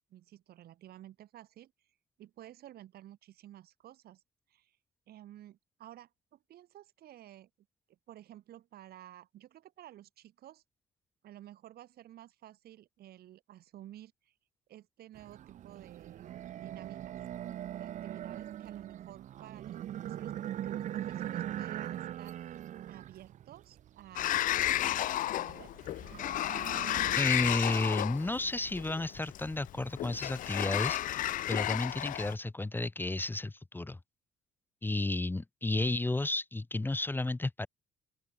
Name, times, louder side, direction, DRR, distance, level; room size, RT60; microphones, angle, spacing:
voice 1, 0.1-1.7 2.2-4.2 4.5-4.8 5.1-7.5 7.9-10.6 11.2-14.3 14.7-17.2 17.7-22.4 22.9-25.7, right 13 dB, 65° right, 5.2 m, -53 dB
sound 1, 15.2-27.2, right 11 dB, 45° right, 0.5 m, -41 dB
Sliding door, 24.2-32.3, left 13 dB, 55° left, 0.4 m, -32 dB
voice 2, 27.2-34.0 34.8-37.7, left 2 dB, 10° left, 1.6 m, -32 dB
open air
cardioid pair, 110°, 17 cm